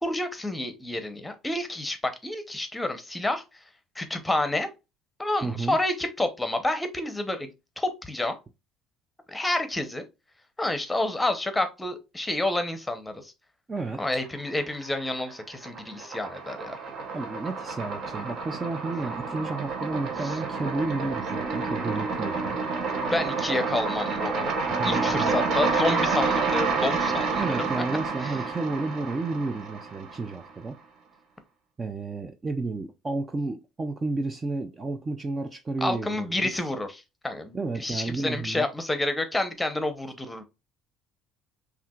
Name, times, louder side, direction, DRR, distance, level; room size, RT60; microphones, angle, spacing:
voice 1, 0.0-3.4 4.0-4.7 5.2-7.5 7.8-8.4 9.3-10.0 10.6-13.3 14.0-16.8 20.2-20.3 23.0-24.5 24.8-27.7 28.2-28.3 35.8-40.4, left 2 dB, 10° left, 0.8 m, -29 dB
voice 2, 5.4-5.8 13.7-14.2 17.1-22.6 24.7-25.4 27.4-30.8 31.8-36.6 37.5-38.7, right 3 dB, 25° right, 0.4 m, -32 dB
Scary transition, 14.2-15.0 15.3-30.5, right 4 dB, 55° right, 1.0 m, -29 dB
5.7 x 2.5 x 2.4 m
supercardioid pair, 100°, 0 cm